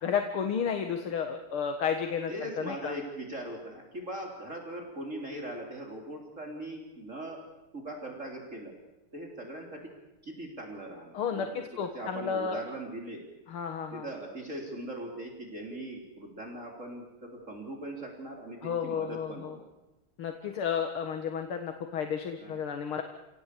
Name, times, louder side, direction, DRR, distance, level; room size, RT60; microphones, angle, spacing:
voice 1, 0.0-2.3 2.6-2.9 11.1-12.6 13.5-14.0 18.6-19.5 20.2-23.0, left 7 dB, 75° left, 6 dB, 2.4 m, -32 dB
voice 2, 2.3-7.4 7.7-8.7 9.1-9.9 10.2-13.2 13.9-19.6 22.4-22.6, right 1 dB, 35° right, 0 dB, 4.1 m, -40 dB
29.0 x 18.0 x 8.5 m, 1.0 s
omnidirectional pair, 2.4 m